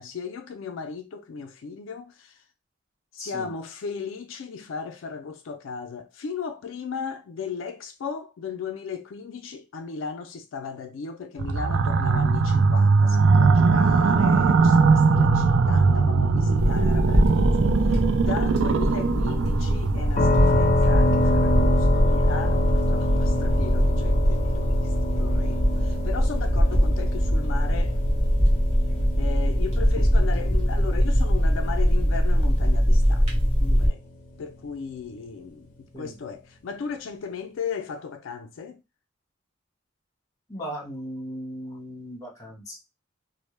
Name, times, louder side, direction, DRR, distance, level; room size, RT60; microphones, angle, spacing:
voice 1, 0.0-2.4 3.1-28.0 29.2-33.3 33.6-34.0 34.4-38.8, left 5 dB, 90° left, 0.4 m, -36 dB
voice 2, 3.2-3.5 35.9-36.1 40.5-42.7, equal, 15° left, 1.1 m, -37 dB
sound 1, 11.4-21.9, right 4 dB, 80° right, 0.4 m, -21 dB
sound 2, 16.6-33.9, equal, 35° right, 0.9 m, -22 dB
sound 3, 20.2-33.8, left 1 dB, 40° left, 0.6 m, -28 dB
2.1 x 2.1 x 3.1 m
head